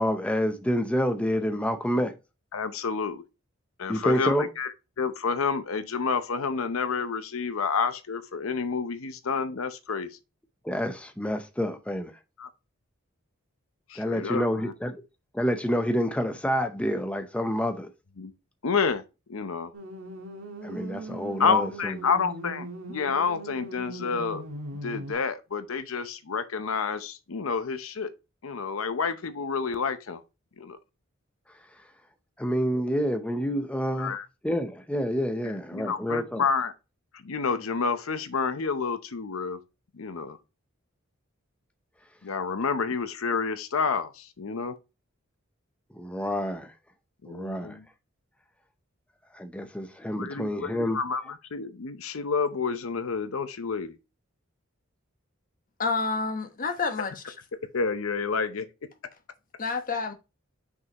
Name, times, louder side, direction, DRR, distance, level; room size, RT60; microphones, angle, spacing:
voice 1, 0.0-2.1 3.9-4.5 10.6-12.1 14.0-15.0 15.3-17.9 20.6-22.0 32.4-34.1 34.4-36.4 45.9-46.7 47.3-47.8 49.3-51.0, equal, 5° left, 0.7 m, -28 dB
voice 2, 2.5-3.2 3.8-4.7 5.0-10.1 12.4-12.5 13.9-14.7 18.2-18.3 18.6-19.0 19.3-19.7 21.4-24.4 24.8-28.1 28.4-30.2 30.6-30.8 32.7-32.8 33.9-34.3 35.4-36.7 37.1-39.6 39.9-40.4 42.2-44.8 47.2-47.9 50.2-53.9 57.7-58.7, left 5 dB, 85° left, 0.7 m, -29 dB
sound 1, 19.7-25.1, right 1 dB, 90° right, 1.5 m, -40 dB
voice 3, 55.8-57.3 59.6-60.1, left 4 dB, 45° left, 1.0 m, -29 dB
6.0 x 5.4 x 2.9 m
head